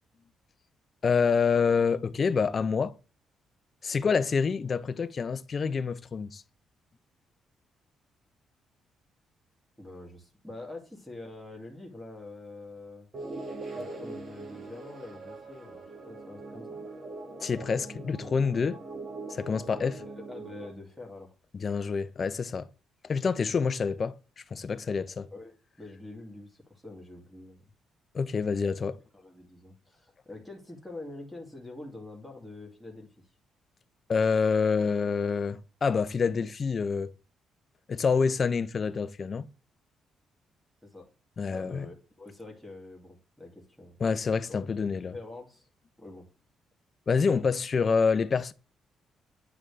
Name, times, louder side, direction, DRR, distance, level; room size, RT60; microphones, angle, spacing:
voice 1, 1.0-2.9 3.8-6.4 17.4-18.8 19.3-20.0 21.5-22.7 23.0-24.1 24.5-25.3 28.1-29.0 34.1-37.1 37.9-39.5 41.4-41.9 44.0-45.1 47.1-48.5, left 5 dB, 40° left, 0.6 m, -27 dB
voice 2, 9.8-13.1 13.7-16.8 19.8-21.3 25.3-27.6 29.1-33.3 40.8-41.1 41.5-44.0 44.5-45.7 46.0-46.3, left 2 dB, ahead, 2.3 m, -45 dB
sound 1, 13.1-20.7, right 3 dB, 45° right, 1.9 m, -42 dB
8.9 x 3.9 x 3.3 m
cardioid pair, 90°, 0 cm